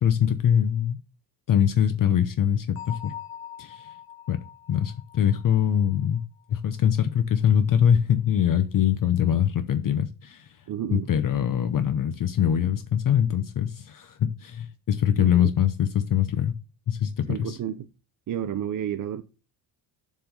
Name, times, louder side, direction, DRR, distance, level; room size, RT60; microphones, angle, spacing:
voice 1, 0.0-1.0 1.5-3.1 3.6-3.9 4.3-4.4 4.7-6.2 6.5-10.5 10.9-16.6 16.9-17.6, left 9 dB, 45° left, 0.7 m, -23 dB
Bell, 2.8-6.4, left 10 dB, 90° left, 1.3 m, -43 dB
voice 2, 10.7-11.1 15.2-15.5 17.3-17.9 18.3-19.2, right 10 dB, 40° right, 0.6 m, -31 dB
7.4 x 3.9 x 5.3 m
cardioid pair, 175°, 47 cm